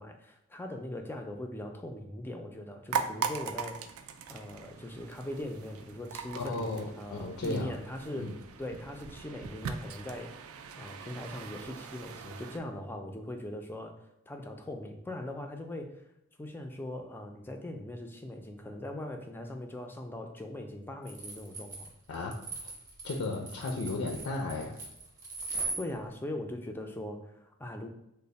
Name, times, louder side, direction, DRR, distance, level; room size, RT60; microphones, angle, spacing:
voice 1, 0.0-3.9 4.3-10.3 10.8-14.0 14.3-16.0 16.4-21.9 25.8-27.9, left 1 dB, 10° left, 4 dB, 0.3 m, -40 dB
sound 1, 2.9-12.6, right 6 dB, 80° right, 0.3 m, -40 dB
voice 2, 6.3-7.7 8.1-8.4 22.1-22.4 23.0-24.8, left 2 dB, 75° left, 0 dB, 0.5 m, -34 dB
sound 2, 21.1-25.8, right 3 dB, 20° right, 0.7 m, -39 dB
3.2 x 2.0 x 3.9 m, 0.84 s
head